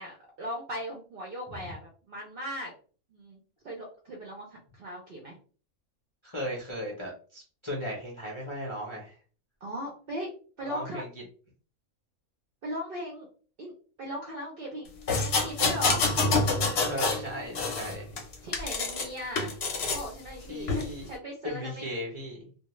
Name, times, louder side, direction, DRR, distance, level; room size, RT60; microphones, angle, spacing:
voice 1, 0.0-2.7 3.1-4.5 4.7-5.4 9.6-10.3 10.6-11.0 12.6-13.3 13.6-13.7 14.0-14.9 15.1-16.1 18.4-19.6 19.9-21.9, equal, 60° right, -1 dB, 0.6 m, -38 dB
voice 2, 6.2-9.2 10.6-11.1 16.8-18.2 20.5-21.1 21.4-22.5, equal, 35° left, -3 dB, 0.5 m, -36 dB
sound 1, 15.1-17.2 17.5-19.1 19.4-20.1 20.7-20.8, left 3 dB, 60° left, 0.8 m, -27 dB
2.2 x 2.2 x 3.0 m, 0.40 s
omnidirectional pair, 1.5 m